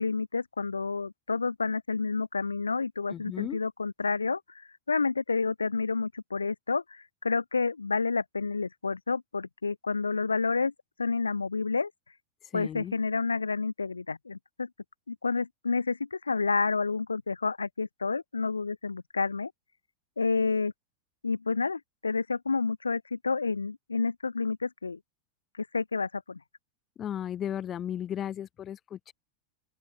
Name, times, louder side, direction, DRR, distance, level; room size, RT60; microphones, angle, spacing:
voice 1, 0.0-10.7 11.0-11.9 12.5-14.7 15.1-19.5 20.2-20.7 21.2-25.0 25.6-26.4, left 4 dB, 75° left, 1.2 m, -29 dB
voice 2, 3.1-3.6 12.4-12.9 27.0-29.1, left 10 dB, 25° left, 6.8 m, -35 dB
open air
figure-of-eight pair, 90°, 0 cm